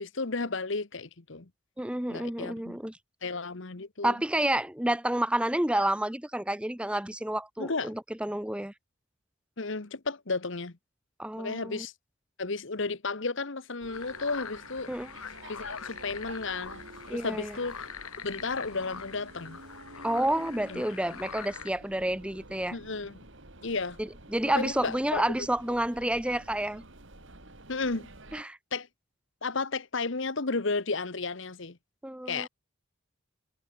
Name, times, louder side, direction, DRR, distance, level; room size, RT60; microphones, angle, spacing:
voice 1, 0.0-1.5 2.1-2.8 3.2-4.1 7.6-7.9 9.6-10.8 11.4-11.9 12.4-14.9 15.5-17.9 18.2-19.6 20.7-20.8 22.7-23.2 23.6-24.0 24.5-25.2 27.7-28.1 28.7-28.9 29.4-31.8 32.3-32.5, left 3 dB, 60° left, 1.1 m, -33 dB
voice 2, 1.8-2.9 4.0-8.7 11.2-11.9 14.9-15.1 17.1-17.5 20.0-22.8 24.0-26.8 28.3-28.6 32.0-32.5, right 1 dB, 5° right, 0.7 m, -29 dB
sound 1, 13.8-28.4, right 2 dB, 60° right, 3.0 m, -50 dB
sound 2, 13.9-21.7, left 6 dB, 90° left, 2.3 m, -43 dB
head